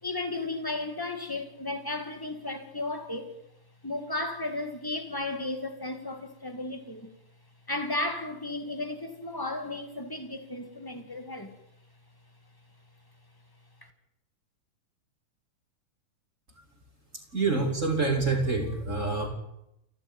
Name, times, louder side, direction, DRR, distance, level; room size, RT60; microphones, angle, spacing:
voice 1, 0.0-3.4 3.8-7.1 7.7-11.6 13.8-13.9, left 2 dB, 10° left, 1.1 m, -34 dB
voice 2, 17.3-19.3, right 3 dB, 20° right, 3.3 m, -26 dB
28.5 x 12.5 x 9.4 m
omnidirectional pair, 3.9 m